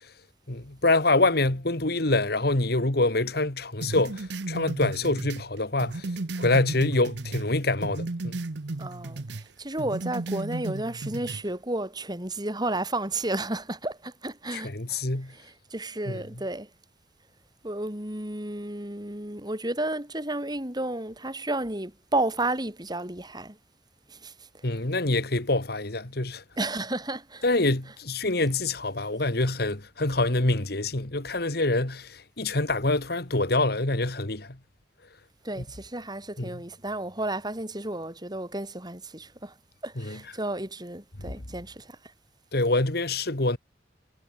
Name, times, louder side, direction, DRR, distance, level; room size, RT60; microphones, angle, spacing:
voice 1, 0.5-6.1 6.4-8.4 14.5-15.3 16.1-16.2 24.6-26.4 27.4-34.6 35.6-35.7 36.4-36.6 40.0-40.2 41.2-41.3 42.5-43.6, left 2 dB, 60° left, 2.2 m, -26 dB
sound 1, 3.8-7.5 7.8-9.5 9.8-11.4, right 2 dB, 75° right, 0.9 m, -34 dB
voice 2, 8.8-15.0 15.3-16.7 17.6-23.6 24.1-24.6 26.6-27.5 35.4-39.5 39.8-42.0, right 2 dB, 25° right, 5.5 m, -32 dB
head